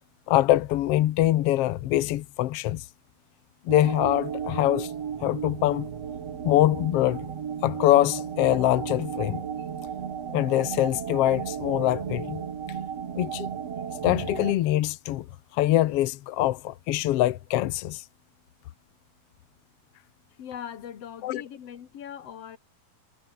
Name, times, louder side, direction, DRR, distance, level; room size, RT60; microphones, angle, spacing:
voice 1, 0.3-2.8 3.7-4.9 5.2-5.9 6.4-7.3 7.6-9.4 10.3-12.4 13.2-13.5 14.0-15.2 15.5-18.0 21.2-21.4, left 14 dB, 75° left, 1.4 m, -24 dB
sound 1, 3.7-14.5, right 7 dB, 50° right, 3.1 m, -34 dB
voice 2, 20.4-22.6, left 9 dB, 50° left, 2.6 m, -40 dB
omnidirectional pair, 3.8 m